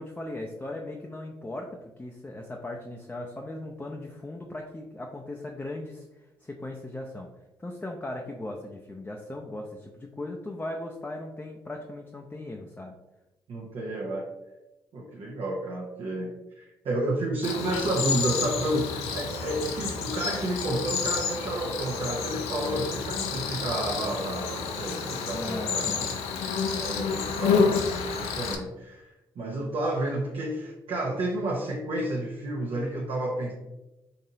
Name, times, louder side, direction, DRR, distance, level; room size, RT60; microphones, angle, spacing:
voice 1, 0.0-6.1 6.4-7.3 7.6-13.0 25.3-26.2, left 1 dB, 15° left, 0 dB, 0.5 m, -38 dB
voice 2, 13.5-14.3 14.9-26.1 26.8-29.1 29.4-33.5, right 1 dB, 55° right, -3 dB, 0.7 m, -31 dB
Cricket, 17.4-28.6, left 5 dB, 70° left, 0.5 m, -29 dB
4.0 x 2.7 x 2.7 m, 0.99 s
hypercardioid pair, 50°, 11 cm